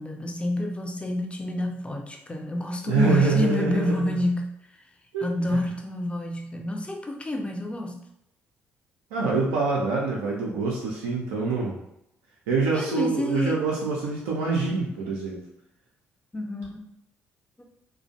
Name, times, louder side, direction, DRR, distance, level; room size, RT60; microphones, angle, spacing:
voice 1, 0.0-4.5 5.2-8.0 12.7-13.6 16.3-16.9 17.6-17.7, left 1 dB, 20° left, 3 dB, 0.5 m, -28 dB
voice 2, 2.9-4.1 5.1-5.6 9.1-11.8 12.5-15.4, right 4 dB, 80° right, -4 dB, 0.4 m, -25 dB
2.4 x 2.1 x 2.6 m, 0.81 s
hypercardioid pair, 45°, 6 cm